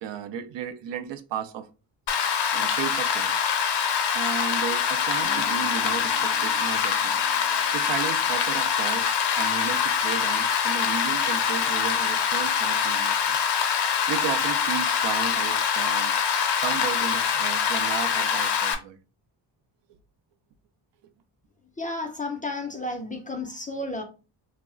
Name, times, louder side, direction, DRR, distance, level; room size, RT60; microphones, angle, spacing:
voice 1, 0.0-1.7 2.1-2.3 2.5-3.4 4.1-7.2 7.7-13.4 14.1-16.2 16.6-19.0, right 8 dB, 75° right, 0.5 m, -34 dB
Rain, 2.1-18.7, left 7 dB, 65° left, 0.6 m, -24 dB
Guitar, 5.2-9.8, right 1 dB, 40° right, 0.9 m, -48 dB
voice 2, 21.8-24.0, left 2 dB, 20° left, 0.3 m, -32 dB
2.3 x 2.1 x 3.6 m
wide cardioid pair, 150°, 44 cm